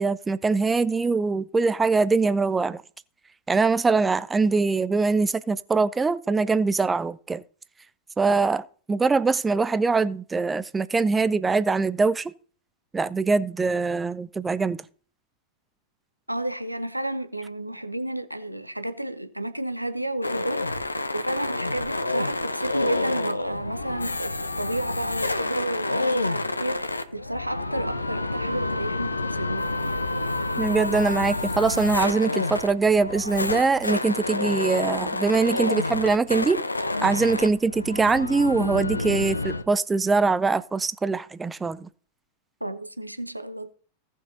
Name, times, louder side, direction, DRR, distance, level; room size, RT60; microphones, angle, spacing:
voice 1, 0.0-2.8 3.5-7.4 8.2-12.3 12.9-14.8 30.6-36.6 37.0-41.9, right 4 dB, 15° right, 0.5 m, -23 dB
voice 2, 16.3-29.7 42.6-43.7, right 1 dB, 90° right, 0.7 m, -32 dB
sound 1, 20.2-39.6, left 2 dB, 80° left, 0.7 m, -28 dB
17.0 x 6.4 x 2.8 m
figure-of-eight pair, 90°, 0 cm